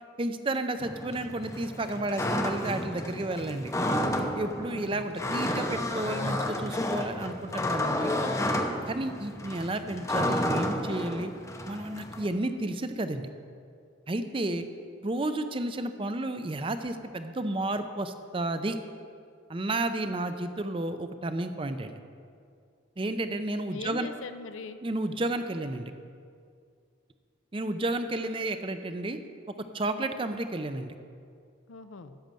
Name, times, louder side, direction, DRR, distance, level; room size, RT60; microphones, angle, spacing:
voice 1, 0.2-3.7 4.3-8.1 8.9-11.3 11.7-13.3 14.1-14.7 15.0-18.8 19.5-21.9 23.0-24.1 24.8-25.9 27.5-29.2 29.7-30.9, right 2 dB, 25° right, 9 dB, 0.5 m, -32 dB
sound 1, 0.8-12.3, left 1 dB, 15° left, 0.6 m, -31 dB
voice 2, 4.7-5.1 14.5-14.7 23.2-23.4 23.7-24.8 31.7-32.2, left 4 dB, 75° left, 10 dB, 0.6 m, -42 dB
10.5 x 6.6 x 7.5 m, 2.3 s
head